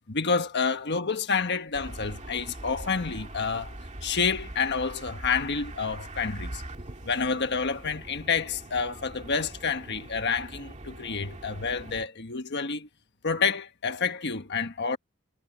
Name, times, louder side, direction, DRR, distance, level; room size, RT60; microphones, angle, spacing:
voice 1, 0.1-6.6 7.0-12.9 13.2-15.0, left 5 dB, 50° left, 1.4 m, -29 dB
sound 1, 1.7-12.1, right 1 dB, 35° right, 2.3 m, -42 dB
head